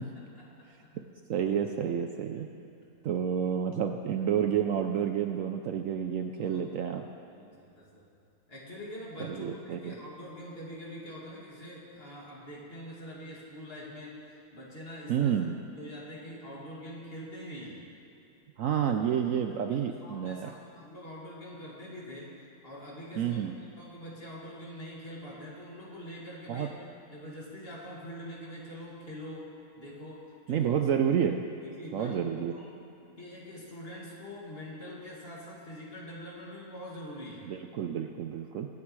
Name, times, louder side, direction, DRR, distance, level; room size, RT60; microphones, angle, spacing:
voice 1, 1.3-2.5 3.0-7.0 9.2-9.9 15.1-15.6 18.6-20.5 23.2-23.5 26.5-26.7 30.5-31.5 31.9-32.5 37.5-38.7, right 8 dB, 65° right, 5 dB, 0.9 m, -29 dB
voice 2, 7.3-8.1 8.5-15.3 15.7-17.8 19.5-26.7 27.1-30.7 31.6-32.8 33.2-37.5, equal, 40° left, -5 dB, 2.5 m, -44 dB
23.5 x 9.5 x 3.2 m, 2.6 s
omnidirectional pair, 1.7 m